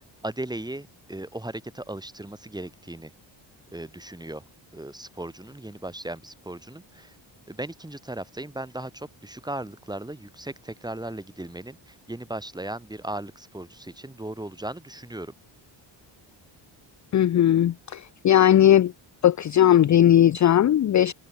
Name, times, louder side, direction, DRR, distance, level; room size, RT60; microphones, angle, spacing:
voice 1, 0.2-3.1 3.7-4.4 4.7-7.1 7.5-15.3, right 1 dB, 10° right, 7.8 m, -37 dB
voice 2, 17.1-18.9 19.2-21.1, left 11 dB, 40° left, 0.5 m, -18 dB
wide cardioid pair, 160°, 49 cm